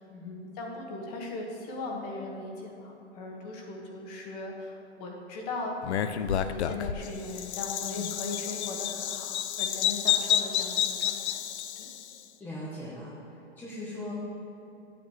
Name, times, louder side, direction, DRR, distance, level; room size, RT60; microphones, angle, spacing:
voice 1, 0.0-5.8 6.0-11.4 11.7-11.9, left 3 dB, 35° left, 0 dB, 1.4 m, -39 dB
Bird vocalization bird call bird song, 5.8-12.1, left 9 dB, 70° left, 0.6 m, -30 dB
voice 2, 12.4-13.1 13.6-14.1, left 1 dB, 5° left, -8 dB, 0.7 m, -39 dB
11.0 x 8.6 x 3.0 m, 3.0 s
hypercardioid pair, 155°, 35 cm